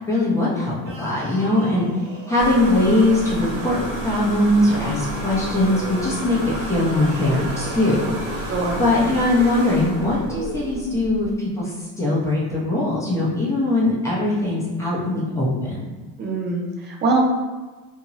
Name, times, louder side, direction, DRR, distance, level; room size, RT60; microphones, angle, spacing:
voice 1, 0.1-1.9 2.3-8.5 8.8-15.9, left 2 dB, 5° left, -7 dB, 0.7 m, -21 dB
sound 1, 0.8-3.5 4.6-6.1 6.9-8.4 9.3-10.8, right 4 dB, 40° right, 0.9 m, -37 dB
voice 2, 1.6-1.9 8.5-8.8 16.2-17.2, right 3 dB, 25° right, 0 dB, 0.4 m, -23 dB
sound 2, 2.4-11.3, right 1 dB, 55° right, 1.1 m, -31 dB
2.7 x 2.2 x 2.9 m, 1.3 s
supercardioid pair, 125°, 46 cm